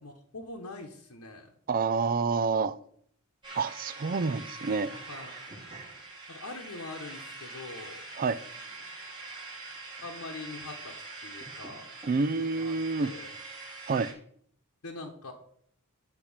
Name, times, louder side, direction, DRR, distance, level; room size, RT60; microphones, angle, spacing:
voice 1, 0.0-1.5 5.1-5.3 6.3-8.1 10.0-10.9 11.2-11.9 12.4-12.7 13.0-13.3 14.8-15.3, left 3 dB, 85° left, 1.1 m, -43 dB
voice 2, 1.7-2.8 3.6-5.0 8.2-8.4 12.1-13.1 13.9-14.1, right 4 dB, 40° right, 0.4 m, -28 dB
sound 1, 3.4-14.1, right 3 dB, 20° right, 2.8 m, -44 dB
8.3 x 4.4 x 7.3 m
head